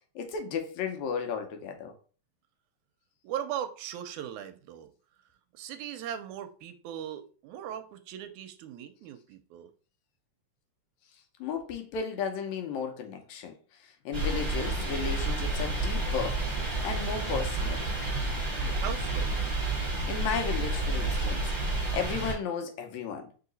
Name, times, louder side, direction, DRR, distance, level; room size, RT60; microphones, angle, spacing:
voice 1, 0.2-1.9 11.4-13.5 14.1-16.4 16.8-17.9 20.1-21.4 21.9-23.3, left 6 dB, 75° left, 1.9 m, -34 dB
voice 2, 3.2-4.9 5.5-9.7 18.6-19.3 20.1-20.2, right 10 dB, 85° right, 1.9 m, -39 dB
sound 1, 14.1-22.3, right 2 dB, 10° right, 1.2 m, -30 dB
4.7 x 2.8 x 3.9 m
omnidirectional pair, 3.4 m